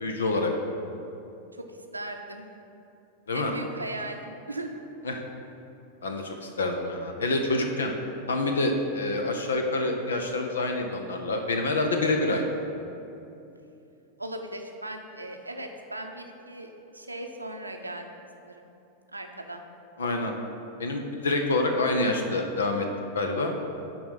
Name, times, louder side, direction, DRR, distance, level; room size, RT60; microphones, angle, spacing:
voice 1, 0.0-0.5 3.3-3.5 5.0-5.2 6.0-7.9 8.3-12.5 20.0-20.3 20.8-22.9 23.1-23.5, left 2 dB, 70° left, 4 dB, 0.8 m, -27 dB
voice 2, 1.9-2.5 3.3-4.7 14.2-18.7 19.1-19.6, right 1 dB, 85° right, 4 dB, 0.8 m, -38 dB
11.5 x 3.9 x 5.8 m, 2.8 s
figure-of-eight pair, 90°, 0 cm